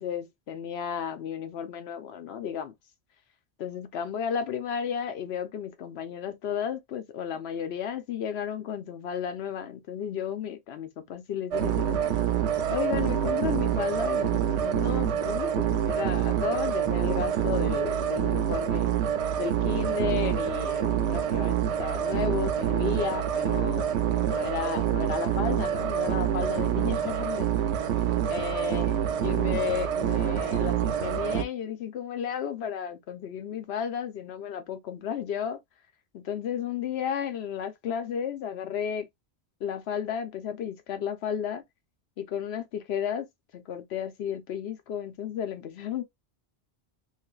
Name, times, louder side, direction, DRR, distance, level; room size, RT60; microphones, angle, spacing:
voice 1, 0.0-2.7 3.6-12.1 12.7-18.9 19.4-27.5 28.3-35.6 36.1-39.0 39.6-41.6 42.2-43.3 43.5-46.0, left 8 dB, 75° left, 0.9 m, -33 dB
sound 1, 11.5-31.4, right 9 dB, 90° right, 0.9 m, -26 dB
3.2 x 2.5 x 2.3 m
omnidirectional pair, 1.1 m